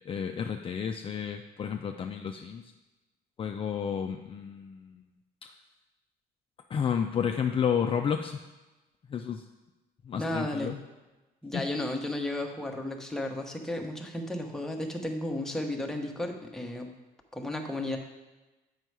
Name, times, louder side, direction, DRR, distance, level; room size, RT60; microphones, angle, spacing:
voice 1, 0.1-2.7 3.4-5.0 5.4-5.5 6.7-8.4 9.1-9.4 10.0-10.8 11.5-11.6, left 7 dB, 35° left, 5 dB, 0.4 m, -31 dB
voice 2, 10.2-10.7 11.4-16.9 17.3-18.0, left 1 dB, 5° left, 1 dB, 1.0 m, -33 dB
7.6 x 5.5 x 4.7 m, 1.1 s
cardioid pair, 110°, 17 cm